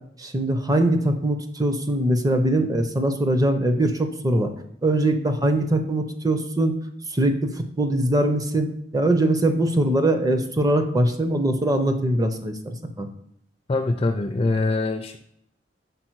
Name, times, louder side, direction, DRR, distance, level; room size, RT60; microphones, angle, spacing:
voice 1, 0.2-4.5 4.8-6.8 7.1-8.7 8.9-13.1, right 1 dB, 20° right, 7 dB, 0.6 m, -22 dB
voice 2, 13.7-15.2, left 2 dB, 30° left, 6 dB, 0.3 m, -23 dB
5.3 x 4.1 x 4.5 m, 0.76 s
head